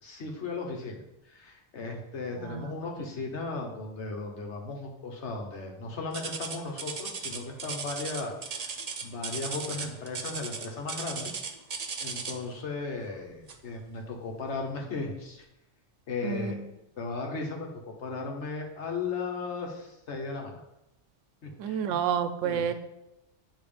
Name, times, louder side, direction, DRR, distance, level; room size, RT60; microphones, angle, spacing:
voice 1, 0.0-8.7 9.0-11.3 12.0-15.4 16.1-16.5 17.0-17.7 18.0-20.6 21.4-22.0 22.4-22.6, left 3 dB, 70° left, 1 dB, 1.4 m, -36 dB
voice 2, 2.3-3.1 16.2-16.6 21.6-22.7, right 8 dB, 85° right, 10 dB, 0.9 m, -30 dB
sound 1, 6.1-12.5 13.5-13.7 14.3-14.4 15.1-15.2, right 5 dB, 45° right, 0.5 m, -36 dB
8.7 x 3.1 x 5.0 m, 0.91 s
omnidirectional pair, 1.2 m